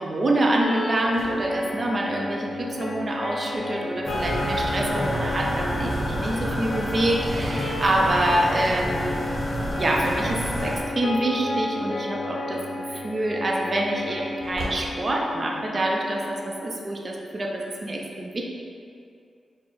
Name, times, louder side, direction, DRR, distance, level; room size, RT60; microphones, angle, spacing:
voice 1, 0.0-9.2 9.8-18.4, right 1 dB, 40° right, -1 dB, 0.5 m, -26 dB
sound 1, 0.6-16.6, left 2 dB, 80° left, 0.5 m, -33 dB
Engine / Slam, 0.7-15.9, equal, 85° right, 1.0 m, -44 dB
sound 2, 4.0-10.8, equal, 10° right, 1.2 m, -29 dB
4.6 x 2.1 x 4.0 m, 2.4 s
cardioid pair, 95°, 0 cm